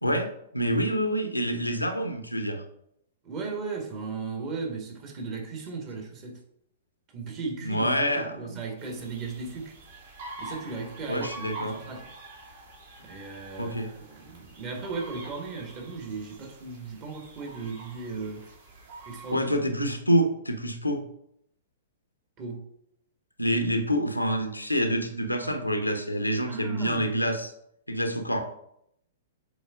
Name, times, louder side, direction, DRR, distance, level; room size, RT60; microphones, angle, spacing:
voice 1, 0.0-2.6 7.6-8.6 11.1-11.8 13.6-13.9 19.3-21.0 23.4-27.5 27.9-28.4, equal, 90° left, 0.8 m, -27 dB
voice 2, 3.2-6.4 7.1-9.7 10.4-12.1 13.0-18.5 19.1-19.5 22.4-22.6 26.5-27.3, right 4 dB, 35° right, 1.6 m, -36 dB
sound 1, 8.8-19.3, right 2 dB, 55° right, 2.4 m, -45 dB
7.1 x 4.1 x 3.6 m
figure-of-eight pair, 110°, 0 cm